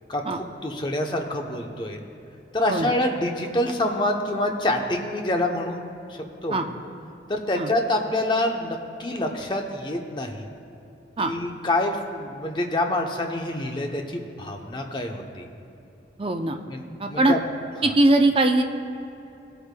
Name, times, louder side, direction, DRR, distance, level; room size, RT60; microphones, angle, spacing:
voice 1, 0.1-2.0 2.5-5.8 6.1-6.6 7.3-10.5 11.2-15.5 16.7-16.8 17.1-17.4 17.8-17.9, left 1 dB, 25° left, 3 dB, 0.7 m, -26 dB
voice 2, 16.2-16.6 17.0-17.3 17.8-18.6, right 2 dB, 30° right, 5 dB, 0.5 m, -20 dB
18.0 x 8.1 x 2.2 m, 2.7 s
head